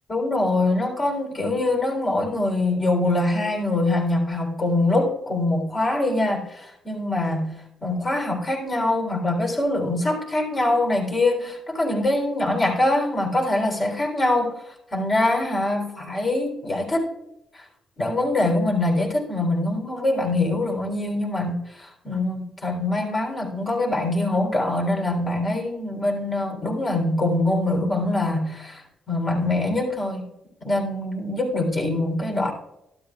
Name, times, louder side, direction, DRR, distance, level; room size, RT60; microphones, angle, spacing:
voice 1, 0.1-17.1 17.5-17.7 18.0-30.3 30.6-32.5, left 2 dB, 30° left, 0 dB, 3.6 m, -24 dB
13.0 x 12.5 x 2.4 m, 0.88 s
cardioid pair, 100°, 0 cm